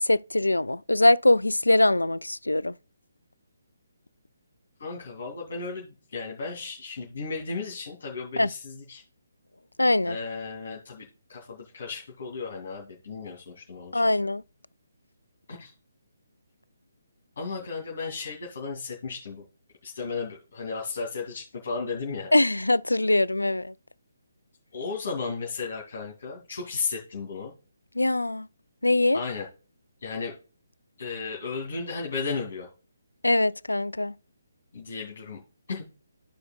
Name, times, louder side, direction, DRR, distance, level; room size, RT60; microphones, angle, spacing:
voice 1, 0.0-2.7 8.4-8.5 9.8-10.2 13.9-14.4 22.3-23.7 28.0-28.5 28.8-29.2 33.2-34.1, left 2 dB, 85° left, 0.3 m, -22 dB
voice 2, 4.8-5.8 6.1-8.6 8.9-9.0 10.1-11.1 11.7-14.1 15.6-15.7 17.4-19.4 19.8-22.3 24.7-27.5 29.1-29.4 30.0-30.3 31.0-32.7 34.7-35.4 35.7-35.8, left 4 dB, 55° left, 2.3 m, -34 dB
14.5 x 4.9 x 2.3 m
figure-of-eight pair, 140°, 0 cm